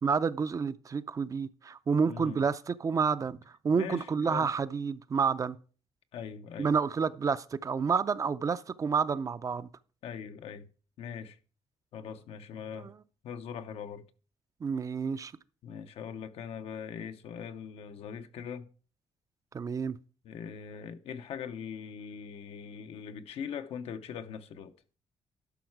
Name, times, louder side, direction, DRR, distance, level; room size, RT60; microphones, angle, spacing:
voice 1, 0.0-3.4 3.6-5.6 6.6-9.7 12.8-12.9 14.6-15.3 19.5-20.0, right 5 dB, 35° right, 0.5 m, -29 dB
voice 2, 2.1-2.4 3.7-4.5 6.1-6.8 10.0-10.7 11.0-11.4 11.9-12.9 13.2-14.1 15.6-18.7 20.2-24.7, left 7 dB, 80° left, 0.8 m, -41 dB
12.0 x 5.6 x 4.7 m
cardioid pair, 115°, 10 cm